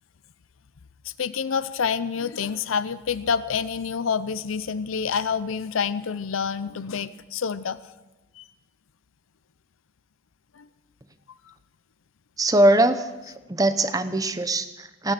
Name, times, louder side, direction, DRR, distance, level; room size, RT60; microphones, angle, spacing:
voice 1, 1.0-7.8 8.4-8.5 10.5-10.7 11.5-11.6, left 6 dB, 90° left, 15 dB, 0.6 m, -27 dB
voice 2, 12.4-13.1 13.5-15.1, right 1 dB, 20° right, 11 dB, 0.8 m, -21 dB
17.5 x 10.5 x 7.4 m, 1.1 s
head